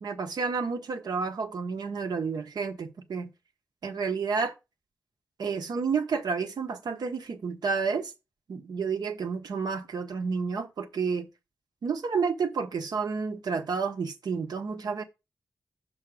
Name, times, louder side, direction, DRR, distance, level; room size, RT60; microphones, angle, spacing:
voice 1, 0.0-3.3 3.8-4.5 5.4-8.1 8.5-11.3 11.8-15.0, right 5 dB, 80° right, 1.2 m, -30 dB
6.4 x 4.0 x 6.3 m
wide cardioid pair, 100°, 7 cm